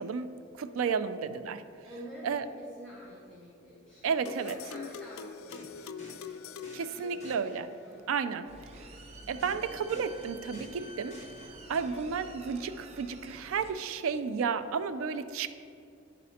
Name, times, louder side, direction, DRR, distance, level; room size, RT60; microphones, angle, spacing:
voice 1, 0.0-1.6 2.2-2.5 4.0-4.6 6.7-7.7 8.1-8.5 9.3-11.2 11.7-15.5, right 6 dB, 85° right, 11 dB, 0.4 m, -32 dB
voice 2, 1.8-4.1 4.4-7.3 7.9-8.0 8.8-9.0, equal, 5° left, -9 dB, 1.1 m, -49 dB
sound 1, 3.9-4.1 5.5-8.0 9.4-12.0, left 1 dB, 35° left, 1.0 m, -52 dB
sound 2, 4.3-7.7, left 7 dB, 80° left, 0.3 m, -44 dB
sound 3, 8.5-13.7, right 1 dB, 30° right, 0.6 m, -48 dB
11.0 x 4.1 x 2.8 m, 2.5 s
head